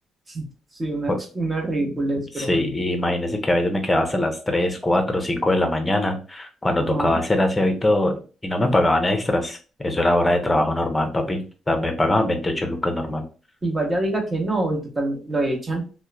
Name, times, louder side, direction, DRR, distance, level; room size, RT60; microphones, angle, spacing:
voice 1, 0.8-2.7 6.8-7.2 13.6-15.8, right 2 dB, 25° right, 2 dB, 0.8 m, -25 dB
voice 2, 1.9-13.2, left 1 dB, 15° left, 5 dB, 0.6 m, -22 dB
2.9 x 2.1 x 2.3 m, 0.35 s
cardioid pair, 90°, 0 cm